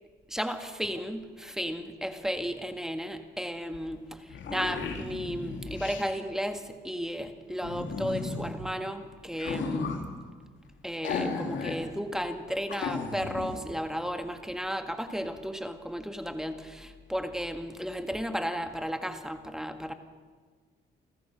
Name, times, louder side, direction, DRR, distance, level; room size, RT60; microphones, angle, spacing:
voice 1, 0.3-4.0 4.5-9.9 10.8-19.9, equal, ahead, 6 dB, 1.8 m, -34 dB
sound 1, 3.7-3.8 4.1-6.1 7.6-8.5 9.3-10.1 11.0-11.8 12.1-12.2 12.7-13.6, left 4 dB, 70° left, 3.0 m, -34 dB
29.5 x 14.0 x 6.5 m, 1.5 s
cardioid pair, 90°, 20 cm